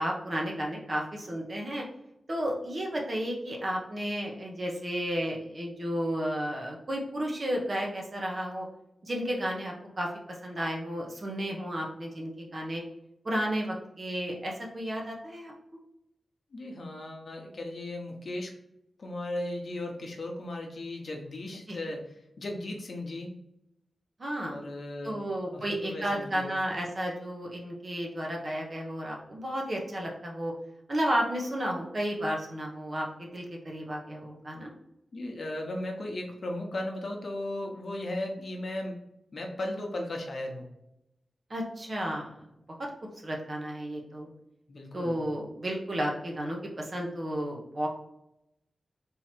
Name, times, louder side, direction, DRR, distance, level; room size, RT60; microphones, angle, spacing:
voice 1, 0.0-1.8 2.3-8.7 9.0-10.1 10.4-12.8 13.2-15.5 21.7-21.8 24.2-24.5 25.0-30.5 30.9-34.7 41.5-42.3 43.2-44.3 44.9-47.9, equal, 40° right, -1 dB, 0.9 m, -32 dB
voice 2, 16.5-18.5 19.0-22.0 22.4-23.3 24.5-25.2 25.5-26.5 35.1-39.0 39.3-40.7 44.7-45.2, left 1 dB, 55° left, 1 dB, 0.9 m, -36 dB
3.7 x 3.0 x 4.4 m, 0.84 s
wide cardioid pair, 120°, 0 cm